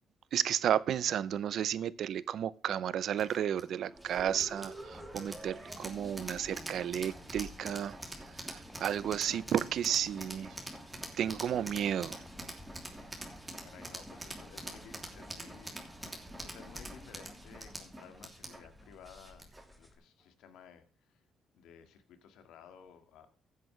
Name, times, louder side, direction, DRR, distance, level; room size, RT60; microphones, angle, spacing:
voice 1, 0.3-8.0 8.3-10.6 11.2-12.2, right 9 dB, 70° right, 0.7 m, -32 dB
sound 1, 3.2-19.7, right 1 dB, 10° right, 3.0 m, -45 dB
sound 2, 3.9-20.0, left 2 dB, 5° left, 2.4 m, -57 dB
voice 2, 9.0-9.4 13.6-15.8 16.1-19.5 19.8-21.2 21.5-23.3, left 8 dB, 85° left, 2.0 m, -56 dB
15.5 x 8.4 x 3.3 m
cardioid pair, 90°, 0 cm